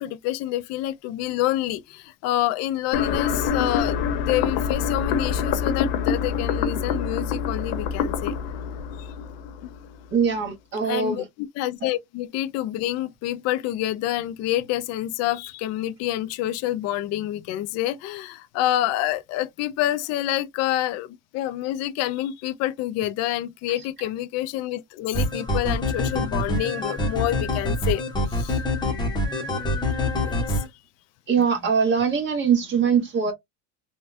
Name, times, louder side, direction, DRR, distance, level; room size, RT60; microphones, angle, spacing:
voice 1, 0.0-8.4 9.0-9.1 9.6-9.7 10.8-28.0 28.3-28.6 29.9-30.6, left 13 dB, 50° left, 0.4 m, -28 dB
sound 1, 2.9-10.0, left 7 dB, 75° left, 1.0 m, -26 dB
voice 2, 10.1-11.2 31.3-33.3, right 6 dB, 35° right, 1.5 m, -22 dB
sound 2, 25.1-30.7, left 1 dB, 15° left, 0.8 m, -25 dB
3.4 x 2.2 x 2.5 m
cardioid pair, 145°, 34 cm